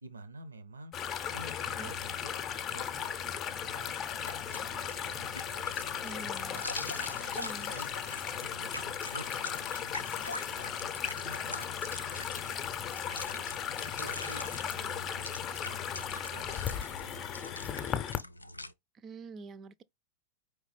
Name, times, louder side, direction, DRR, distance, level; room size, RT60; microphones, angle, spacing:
voice 1, 0.0-0.9 1.3-2.2 2.5-5.9 6.2-7.0 7.6-7.9 8.4-11.9 12.3-13.4 14.0-18.7, right 3 dB, 75° right, 0.7 m, -51 dB
sound 1, 0.9-18.2, left 8 dB, 30° left, 0.6 m, -36 dB
sound 2, 4.3-18.7, left 2 dB, 85° left, 0.3 m, -44 dB
voice 2, 6.0-6.7 7.2-7.7 18.9-19.8, right 4 dB, 25° right, 0.4 m, -46 dB
4.9 x 3.2 x 3.2 m
figure-of-eight pair, 90°, 0 cm